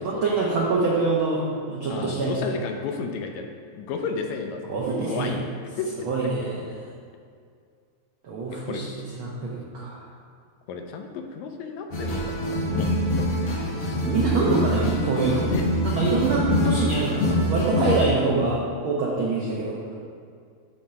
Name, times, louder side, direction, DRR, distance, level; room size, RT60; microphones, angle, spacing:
voice 1, 0.0-2.5 4.7-5.3 6.1-6.7 8.2-10.0 13.7-15.5 15.8-19.8, right 3 dB, 80° right, -4 dB, 1.1 m, -25 dB
voice 2, 1.9-3.5 3.7-4.6 5.1-5.5 5.8-5.9 8.5-8.8 10.7-13.4 15.5-15.6, left 5 dB, 80° left, 4 dB, 1.8 m, -32 dB
sound 1, 11.9-18.1, left 1 dB, 60° left, 1.8 m, -25 dB
9.0 x 3.2 x 5.7 m, 2.2 s
omnidirectional pair, 3.4 m